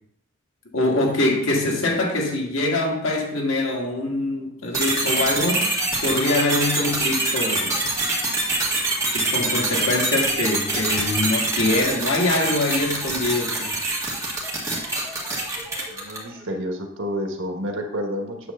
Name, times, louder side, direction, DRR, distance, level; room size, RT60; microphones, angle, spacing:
voice 1, 0.7-5.7 6.0-7.8 9.1-13.7, left 2 dB, 90° left, 0 dB, 1.8 m, -23 dB
sound 1, 4.7-16.3, right 2 dB, 15° right, 1.9 m, -25 dB
voice 2, 15.9-18.5, equal, 80° right, 2 dB, 1.4 m, -29 dB
9.3 x 3.3 x 6.7 m, 0.73 s
head